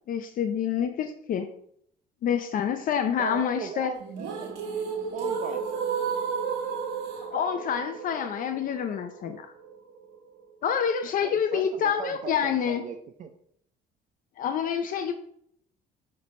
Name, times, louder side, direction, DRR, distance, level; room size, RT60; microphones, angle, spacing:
voice 1, 0.1-1.5 2.2-3.9 7.1-9.5 10.6-12.8 14.4-15.1, left 8 dB, 55° left, 7 dB, 0.5 m, -27 dB
voice 2, 3.2-4.5 5.1-5.7 11.2-13.3, right 7 dB, 45° right, 5 dB, 0.5 m, -38 dB
sound 1, 4.0-10.0, right 6 dB, 85° right, 1.3 m, -32 dB
7.8 x 3.3 x 4.2 m, 0.69 s
cardioid pair, 110°, 17 cm